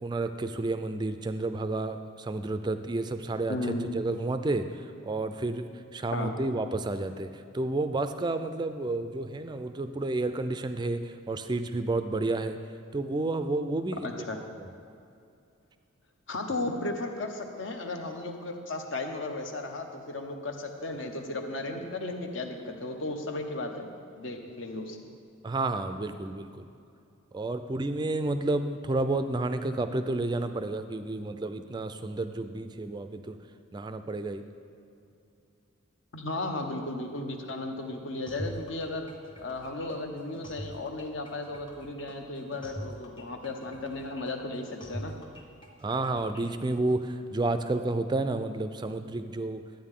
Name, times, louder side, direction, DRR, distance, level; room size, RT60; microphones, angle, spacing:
voice 1, 0.0-3.6 3.9-12.6 12.9-14.2 14.6-14.7 25.4-26.7 27.3-33.4 33.7-34.4 45.8-49.6, right 2 dB, 20° right, 9 dB, 0.3 m, -31 dB
voice 2, 3.5-3.9 6.1-6.3 14.0-14.4 16.3-23.9 24.2-25.0 36.1-39.1 39.4-45.1, left 2 dB, 60° left, 4 dB, 0.9 m, -35 dB
sound 1, 38.3-47.0, equal, 25° left, 1.0 m, -43 dB
11.5 x 8.9 x 3.7 m, 2.6 s
head